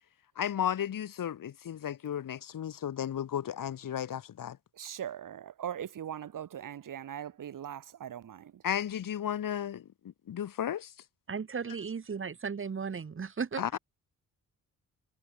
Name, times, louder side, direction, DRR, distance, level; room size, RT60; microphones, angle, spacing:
voice 1, 0.4-4.6 8.6-9.9 10.3-10.9 13.6-13.8, left 9 dB, 70° left, 4.7 m, -34 dB
voice 2, 4.8-8.4, right 9 dB, 65° right, 3.1 m, -40 dB
voice 3, 11.3-13.8, right 6 dB, 35° right, 3.7 m, -36 dB
wide cardioid pair, 145°, 34 cm